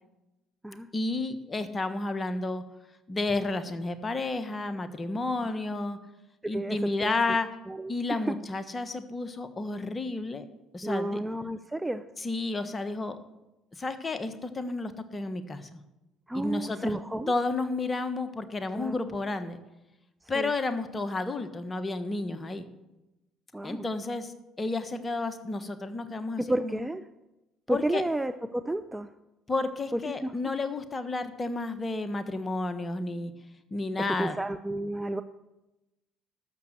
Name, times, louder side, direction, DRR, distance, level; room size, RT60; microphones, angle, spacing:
voice 1, 0.9-2.6 3.1-6.0 6.4-7.5 7.9-10.4 10.7-11.2 12.2-13.2 13.7-15.8 16.3-17.0 17.3-19.6 20.3-22.6 23.6-26.7 27.7-28.0 29.5-33.3 33.7-34.4, left 3 dB, 30° left, 10 dB, 1.3 m, -31 dB
voice 2, 6.5-7.2 7.7-8.4 10.8-12.1 16.3-17.3 18.7-19.0 20.3-20.5 23.5-23.8 26.4-27.0 27.7-29.1 29.9-30.3 34.2-35.2, right 1 dB, 10° right, 10 dB, 0.6 m, -31 dB
12.0 x 7.2 x 7.8 m, 0.98 s
hypercardioid pair, 60°, 0 cm